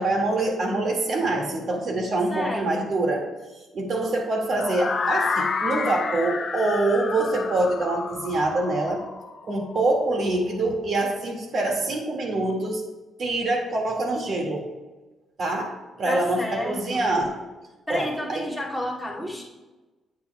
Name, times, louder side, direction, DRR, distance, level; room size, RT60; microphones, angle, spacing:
voice 1, 0.0-3.2 3.7-9.0 9.4-12.9 13.2-14.7 15.4-15.7 16.0-17.4 17.9-18.5, right 2 dB, 55° right, 1 dB, 1.9 m, -25 dB
voice 2, 2.3-2.9 16.1-17.0 17.9-19.4, left 1 dB, 5° right, -4 dB, 2.3 m, -31 dB
sound 1, 4.6-10.5, left 5 dB, 45° left, 0.7 m, -30 dB
9.4 x 8.4 x 2.2 m, 1.2 s
cardioid pair, 90°, 0 cm